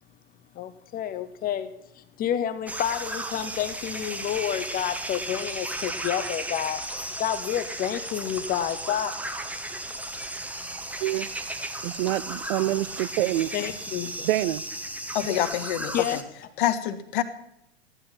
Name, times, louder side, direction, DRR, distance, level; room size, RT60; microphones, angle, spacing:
voice 1, 0.5-6.8 7.2-9.1 13.5-14.3 15.3-15.4 15.9-16.2, left 10 dB, 25° left, 11 dB, 1.0 m, -29 dB
sound 1, 2.7-16.2, right 1 dB, 5° right, 1.3 m, -35 dB
voice 2, 11.8-13.5 14.2-14.6, right 15 dB, 50° right, 17 dB, 0.8 m, -26 dB
voice 3, 15.1-16.2 16.6-17.2, left 11 dB, 50° left, 10 dB, 1.6 m, -26 dB
14.5 x 11.5 x 5.9 m, 0.80 s
figure-of-eight pair, 95°, 33 cm